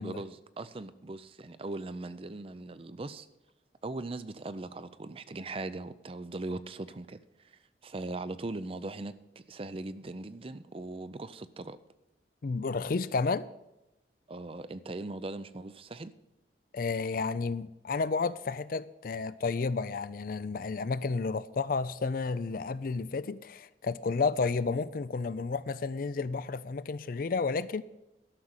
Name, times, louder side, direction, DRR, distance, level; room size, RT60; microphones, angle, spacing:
voice 1, 0.0-3.3 3.8-11.8 14.3-16.1, right 2 dB, 30° right, 0.5 m, -40 dB
voice 2, 12.4-13.5 16.7-27.8, left 4 dB, 50° left, 0.4 m, -31 dB
12.0 x 6.4 x 7.3 m
head